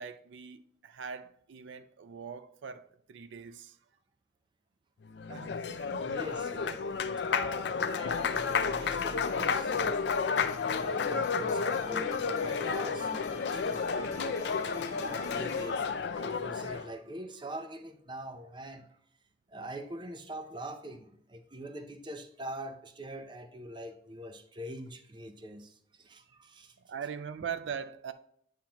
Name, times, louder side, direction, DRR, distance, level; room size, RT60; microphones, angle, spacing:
voice 1, 0.0-3.8 5.3-6.1 26.9-28.1, right 7 dB, 70° right, 0.4 m, -41 dB
Applause, 5.1-16.9, left 5 dB, 60° left, 0.4 m, -31 dB
voice 2, 6.0-10.0 10.6-14.4 14.8-19.0 19.5-26.8, right 1 dB, 25° right, 0.6 m, -44 dB
sound 1, 8.0-15.7, left 2 dB, 40° left, 1.2 m, -44 dB
8.7 x 5.7 x 2.9 m
head